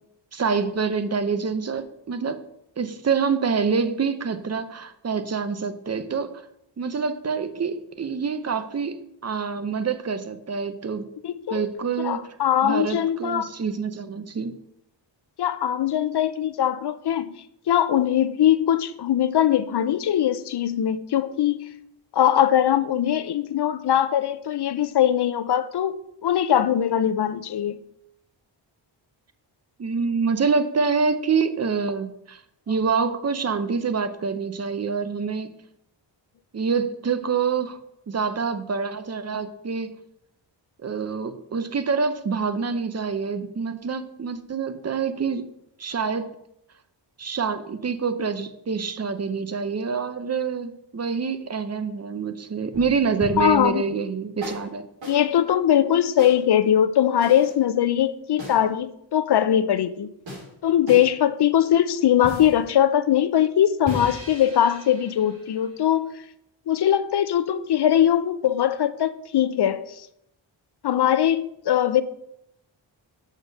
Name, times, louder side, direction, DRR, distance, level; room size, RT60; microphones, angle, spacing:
voice 1, 0.3-2.4 2.8-6.3 6.8-11.1 11.5-12.3 12.6-14.6 29.8-32.4 32.7-35.5 36.5-37.8 38.1-39.9 40.8-45.4 45.8-46.3 47.2-54.9, right 5 dB, 35° right, 0.7 m, -26 dB
voice 2, 11.2-11.7 12.0-13.5 15.4-17.3 17.7-21.7 22.1-25.9 26.2-27.8 53.4-53.8 55.1-60.1 60.6-66.1 66.7-70.0 70.8-72.0, left 10 dB, 60° left, 0.6 m, -21 dB
sound 1, 52.7-53.6 54.4-54.7 55.0-55.2 56.2-56.4 57.2-57.6 58.4-58.6 60.3-60.5 60.9-61.1 62.2-62.6 63.9-66.0, equal, 75° right, 3.3 m, -37 dB
6.5 x 4.9 x 6.5 m
wide cardioid pair, 125°, 46 cm